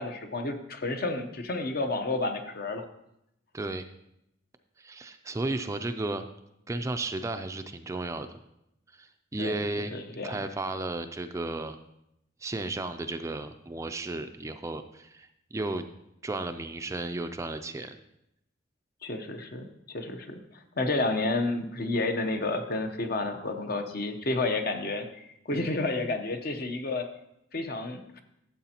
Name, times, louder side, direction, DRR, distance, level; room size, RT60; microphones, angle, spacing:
voice 1, 0.0-2.9 9.4-9.6 9.9-10.4 19.0-20.4 20.8-27.0 27.5-28.0, left 2 dB, 55° left, 6 dB, 0.8 m, -30 dB
voice 2, 3.5-3.9 4.8-6.2 6.7-8.3 8.9-9.9 10.2-11.8 12.4-15.8 16.2-18.0, right 2 dB, 15° right, 8 dB, 0.3 m, -34 dB
13.0 x 7.7 x 2.9 m, 0.83 s
head